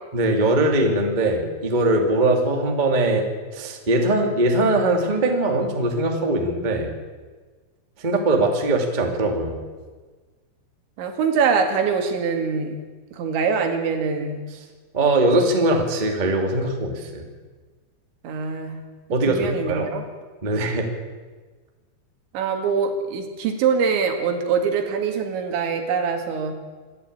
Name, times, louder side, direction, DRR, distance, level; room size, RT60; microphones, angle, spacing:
voice 1, 0.1-3.3 3.5-6.9 8.0-9.6 14.9-17.3 19.1-19.9 20.4-20.9, right 2 dB, 20° right, 3 dB, 1.4 m, -21 dB
voice 2, 11.0-12.8 13.1-14.4 18.2-18.8 19.3-20.0 22.3-26.5, right 5 dB, 80° right, 5 dB, 4.5 m, -23 dB
26.5 x 12.0 x 8.7 m, 1.4 s
omnidirectional pair, 5.2 m